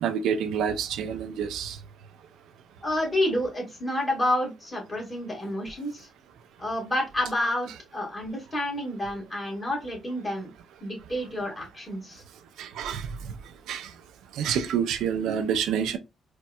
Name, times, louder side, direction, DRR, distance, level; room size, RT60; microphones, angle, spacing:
voice 1, 0.0-1.8 12.6-13.3 13.7-13.9 14.3-16.0, right 8 dB, 85° right, 0.4 m, -28 dB
voice 2, 2.8-6.1 6.6-10.5 10.8-12.2, left 1 dB, 25° left, 1.8 m, -29 dB
4.3 x 2.2 x 2.2 m
cardioid pair, 90°, 0 cm